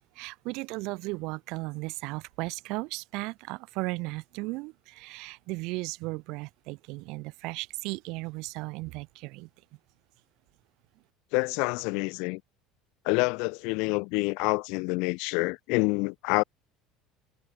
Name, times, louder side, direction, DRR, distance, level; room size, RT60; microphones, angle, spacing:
voice 1, 0.2-9.5, right 24 dB, 65° right, 1.8 m, -36 dB
voice 2, 11.3-12.4 13.0-16.4, left 30 dB, 70° left, 0.4 m, -27 dB
cardioid pair, 155°, 0 cm